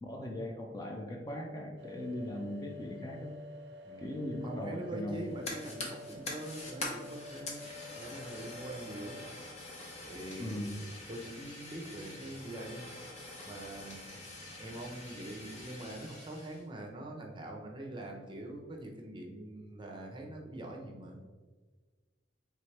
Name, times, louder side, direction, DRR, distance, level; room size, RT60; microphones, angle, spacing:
voice 1, 0.0-3.4 4.0-5.4 10.4-10.8, left 1 dB, 20° left, 1 dB, 0.4 m, -39 dB
sound 1, 1.8-9.3, left 2 dB, 60° right, 0.5 m, -50 dB
voice 2, 3.8-7.7 8.0-9.2 10.0-10.8 11.1-12.8 13.5-14.1 14.6-21.2, right 1 dB, 25° right, 1 dB, 0.7 m, -44 dB
Fire, 5.1-16.6, left 2 dB, 35° left, 0.8 m, -45 dB
4.4 x 3.5 x 3.2 m, 1.4 s
head